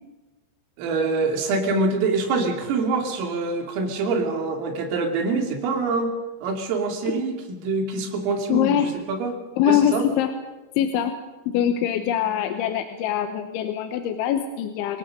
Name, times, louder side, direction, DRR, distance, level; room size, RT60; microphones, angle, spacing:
voice 1, 0.8-6.1 6.4-9.3 9.7-10.0, right 3 dB, 85° right, 3 dB, 5.4 m, -25 dB
voice 2, 8.5-8.9 9.6-10.3 10.8-11.1 11.5-15.0, left 10 dB, 80° left, 7 dB, 3.3 m, -23 dB
27.5 x 17.5 x 6.5 m, 1.2 s
omnidirectional pair, 5.8 m